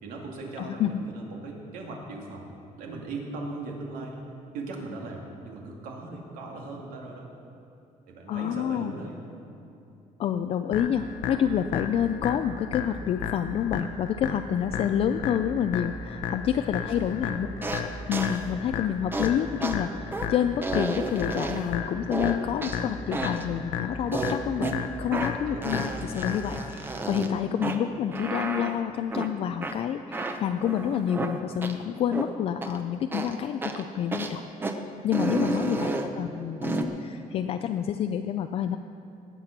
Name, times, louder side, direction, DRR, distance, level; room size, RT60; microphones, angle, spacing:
voice 1, 0.0-2.5 2.8-4.2 4.5-7.3 8.1-9.2 16.7-17.7 25.5-25.8 35.4-36.1, right 3 dB, 90° right, 0 dB, 2.3 m, -39 dB
voice 2, 0.6-1.0 8.3-8.9 10.2-17.8 18.1-24.7 25.0-34.7 35.0-38.8, left 9 dB, 45° left, 8 dB, 0.4 m, -28 dB
sound 1, 10.7-26.7, left 7 dB, 75° left, 0.9 m, -34 dB
sound 2, 17.6-17.8 18.1-18.4 19.1-19.3 19.6-19.8 20.1-20.3 20.6-21.7 22.1-22.8 23.1-23.4 24.1-24.8 25.1-25.3 25.6-27.3 27.6-27.8 28.1-28.7 29.1-29.3 29.6-29.7 30.1-31.3 31.6-31.7 32.1-32.3 32.6-32.8 33.1-33.3 33.6-33.8 34.1-34.3 34.6-34.7 35.1-36.1 36.6-36.8, right 2 dB, 15° right, 0.7 m, -31 dB
19.0 x 7.6 x 5.9 m, 2.8 s
cardioid pair, 170°, 14 cm